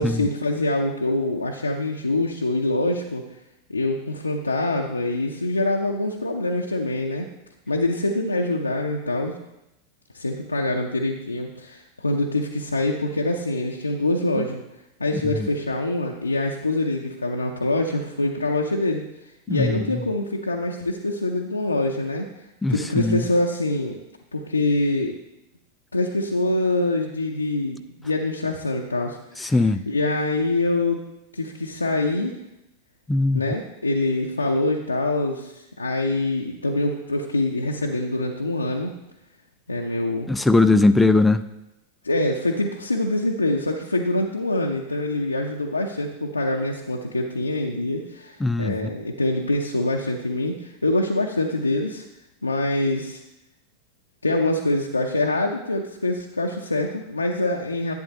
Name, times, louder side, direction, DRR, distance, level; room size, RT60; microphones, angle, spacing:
voice 1, 0.0-3.2 3.7-7.3 7.7-9.4 10.1-14.6 15.0-19.0 19.5-24.0 24.3-25.1 25.9-31.0 31.3-32.4 33.3-38.9 39.7-40.3 42.0-52.0 52.4-53.2 54.2-57.9, left 2 dB, 80° left, 0 dB, 0.6 m, -25 dB
voice 2, 19.5-19.9 22.6-23.2 29.4-29.8 33.1-33.4 40.3-41.4 48.4-48.7, left 2 dB, 5° left, 10 dB, 0.4 m, -19 dB
10.5 x 8.5 x 2.7 m, 0.90 s
figure-of-eight pair, 90°, 0 cm